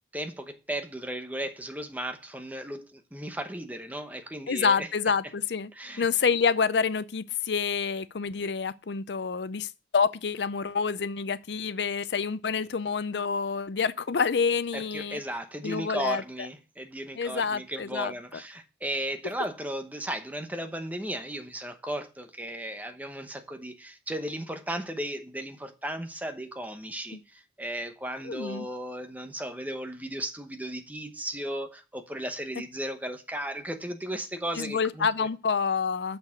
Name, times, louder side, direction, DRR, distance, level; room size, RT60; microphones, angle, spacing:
voice 1, 0.1-4.9 5.7-6.1 14.7-35.3, right 1 dB, 10° right, 0.9 m, -35 dB
voice 2, 4.5-5.7 6.0-15.2 15.6-16.2 17.1-18.1 27.1-27.2 28.2-28.7 34.6-36.2, left 5 dB, 70° left, 0.5 m, -28 dB
6.6 x 6.0 x 6.4 m
head